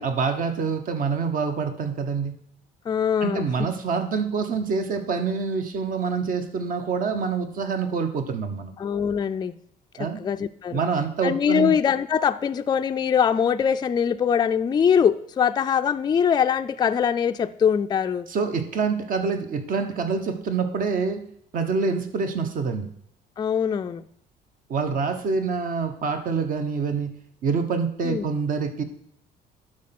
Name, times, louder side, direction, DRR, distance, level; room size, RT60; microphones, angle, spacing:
voice 1, 0.0-2.3 3.2-8.7 10.0-10.2 10.7-11.7 18.3-21.2 21.5-22.9 24.7-27.1 27.4-28.8, right 5 dB, 55° right, 7 dB, 1.2 m, -26 dB
voice 2, 2.9-3.5 8.8-9.6 10.2-10.8 11.2-18.3 23.4-24.0 28.0-28.3, left 7 dB, 25° left, 9 dB, 0.4 m, -22 dB
11.5 x 4.5 x 5.9 m, 0.69 s
cardioid pair, 110°, 17 cm